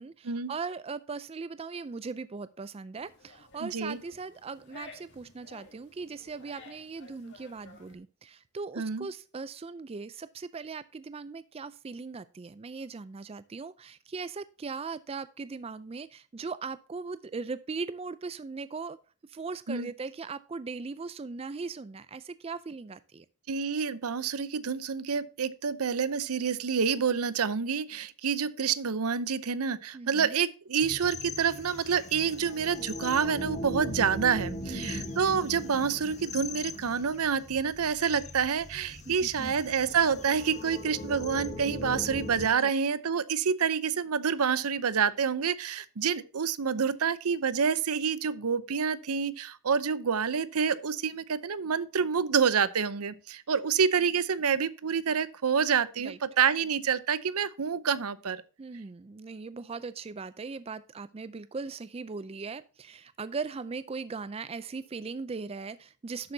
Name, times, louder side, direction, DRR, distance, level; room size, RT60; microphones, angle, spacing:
voice 1, 0.0-19.0 19.3-23.3 29.9-30.4 34.7-35.1 39.1-39.6 42.5-42.7 56.0-56.2 58.6-66.3, right 4 dB, 25° right, 0.4 m, -39 dB
sound 1, 3.0-8.0, left 3 dB, 50° left, 2.3 m, -53 dB
voice 2, 3.6-4.0 8.8-9.1 19.7-19.9 23.5-58.4, right 6 dB, 80° right, 0.7 m, -28 dB
sound 2, 30.8-42.5, left 1 dB, 30° left, 1.3 m, -39 dB
11.5 x 8.2 x 2.7 m
head